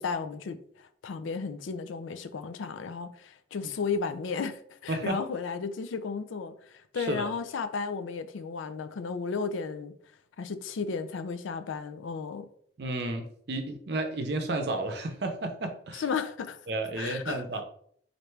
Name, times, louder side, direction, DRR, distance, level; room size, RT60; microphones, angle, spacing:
voice 1, 0.0-9.9 10.4-12.5 15.9-16.6 17.0-17.4, left 5 dB, 85° left, 0.4 m, -34 dB
voice 2, 7.0-7.3 12.8-16.1 16.7-17.6, right 2 dB, 60° right, 0.6 m, -32 dB
3.2 x 2.6 x 4.5 m
head